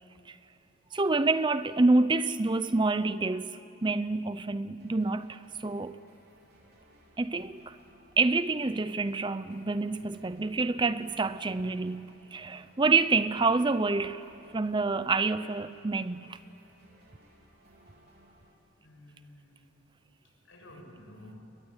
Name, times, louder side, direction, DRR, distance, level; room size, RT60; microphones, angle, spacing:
voice 1, 0.9-6.0 7.2-7.8 8.2-16.4, right 3 dB, 20° right, 0.5 m, -27 dB
sound 1, 4.8-18.5, right 1 dB, 50° right, 4.1 m, -60 dB
voice 2, 18.8-19.7 20.2-21.4, left 1 dB, 70° left, 6.8 m, -52 dB
29.5 x 22.0 x 8.9 m
head